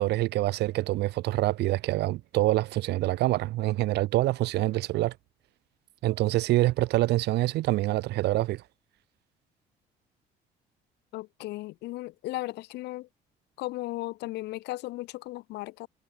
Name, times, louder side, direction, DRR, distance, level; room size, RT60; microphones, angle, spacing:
voice 1, 0.0-5.1 6.0-8.6, right 17 dB, 80° right, 2.8 m, -26 dB
voice 2, 11.1-13.1 13.6-15.9, left 18 dB, 85° left, 6.3 m, -36 dB
cardioid pair, 110°, 17 cm